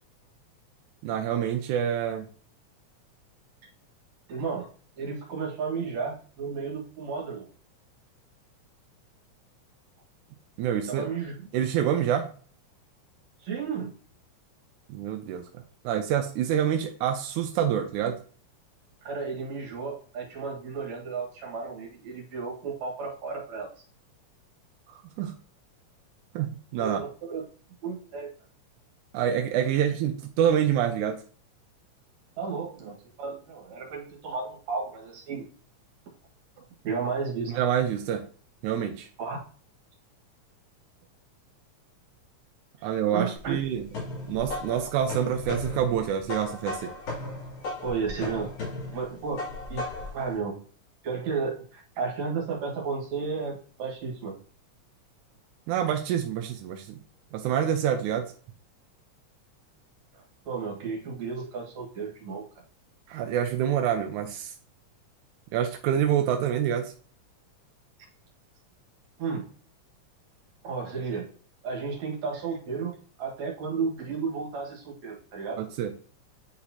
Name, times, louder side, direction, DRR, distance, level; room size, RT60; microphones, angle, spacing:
voice 1, 1.0-2.3 10.6-11.1 11.5-12.3 14.9-18.2 24.9-25.4 26.4-27.0 29.1-31.2 37.5-38.3 38.6-39.1 42.8-43.9 44.3-46.9 55.7-57.0 57.3-58.3 63.1-64.5 65.5-66.9 75.6-76.0, right 9 dB, 90° right, 5 dB, 2.0 m, -27 dB
voice 2, 4.3-4.7 5.0-7.5 10.7-11.5 13.4-13.9 19.0-23.7 26.7-27.0 27.2-27.4 27.8-28.3 32.4-35.5 36.6-37.5 39.2-39.4 42.8-43.6 47.8-48.5 48.9-49.4 49.7-49.8 50.1-50.6 51.0-54.4 60.5-62.4 69.2-69.5 70.6-71.3 71.6-75.6, right 5 dB, 70° right, -1 dB, 3.0 m, -33 dB
sound 1, 43.4-50.2, left 2 dB, 90° left, 4.2 m, -36 dB
9.7 x 4.1 x 2.9 m, 0.43 s
omnidirectional pair, 3.4 m